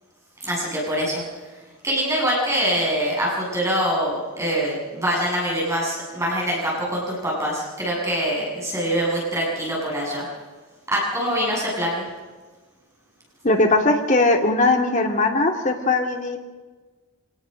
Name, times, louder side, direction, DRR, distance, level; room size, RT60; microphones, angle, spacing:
voice 1, 0.4-1.2 1.8-10.2 10.9-12.1, equal, 15° right, -3 dB, 7.4 m, -24 dB
voice 2, 13.4-16.4, left 2 dB, 35° left, 2 dB, 2.6 m, -19 dB
25.5 x 19.5 x 6.6 m, 1.3 s
head